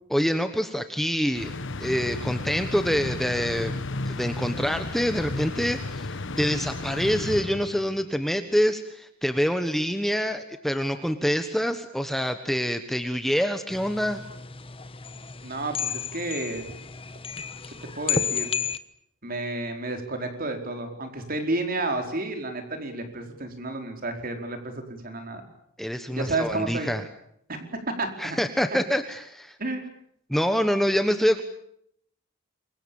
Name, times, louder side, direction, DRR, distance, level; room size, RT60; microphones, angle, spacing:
voice 1, 0.1-1.5 1.8-3.7 4.0-14.2 25.8-27.0 28.2-29.5 30.3-31.4, equal, ahead, 8 dB, 1.3 m, -26 dB
sound 1, 1.3-8.0, left 2 dB, 60° left, 1.2 m, -33 dB
sound 2, 13.7-18.8, left 6 dB, 25° left, 1.2 m, -32 dB
voice 2, 15.4-16.7 17.9-18.5 19.2-25.4 26.1-26.9 27.5-27.6 28.0-28.4 29.6-29.9, right 2 dB, 45° right, 5 dB, 4.7 m, -31 dB
28.0 x 23.5 x 7.2 m, 0.71 s
head